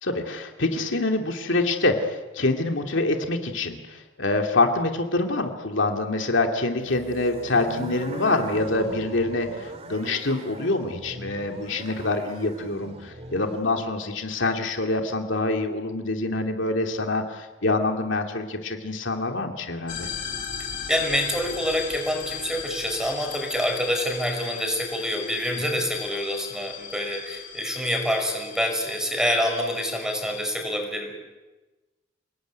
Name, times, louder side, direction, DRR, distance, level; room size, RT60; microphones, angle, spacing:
voice 1, 0.0-20.1 25.7-25.8, left 2 dB, 70° left, 4 dB, 2.7 m, -26 dB
sound 1, 6.8-13.7, right 1 dB, 35° right, 2.3 m, -39 dB
sound 2, 19.9-30.5, left 7 dB, 45° left, 3.2 m, -37 dB
voice 2, 20.9-31.1, equal, 5° right, 4 dB, 5.5 m, -26 dB
29.5 x 19.5 x 9.5 m, 1.2 s
head